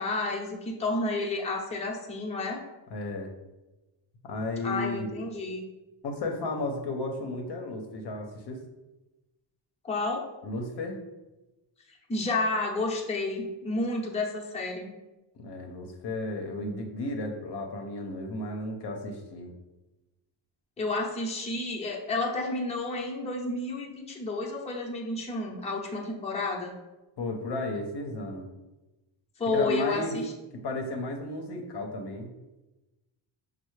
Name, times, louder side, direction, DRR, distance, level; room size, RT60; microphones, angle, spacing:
voice 1, 0.0-2.6 4.6-5.7 9.8-10.2 12.1-14.9 20.8-26.7 29.4-30.3, left 2 dB, 15° left, -2 dB, 0.6 m, -30 dB
voice 2, 2.9-3.3 4.2-5.1 6.0-8.6 10.4-11.0 15.3-19.5 27.2-28.5 29.5-30.2 30.5-32.3, left 2 dB, 55° left, 3 dB, 0.7 m, -34 dB
5.4 x 2.0 x 3.1 m, 1.1 s
cardioid pair, 85°, 50 cm